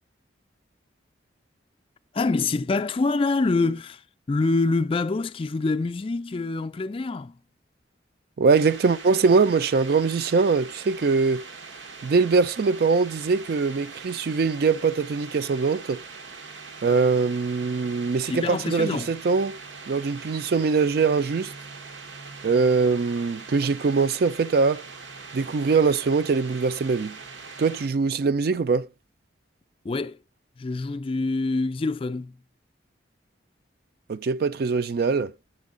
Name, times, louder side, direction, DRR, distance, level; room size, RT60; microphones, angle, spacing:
voice 1, 2.1-4.0 4.3-7.4 18.3-19.1 29.8-30.2 30.6-32.3, left 3 dB, 30° left, 0.3 m, -25 dB
voice 2, 8.4-11.4 12.0-16.0 16.8-19.6 19.9-21.5 22.4-24.8 25.3-27.2 27.6-28.9 34.1-35.3, right 4 dB, 55° right, 0.4 m, -22 dB
sound 1, 8.5-27.9, right 4 dB, 85° right, 1.1 m, -42 dB
8.1 x 6.3 x 3.7 m
head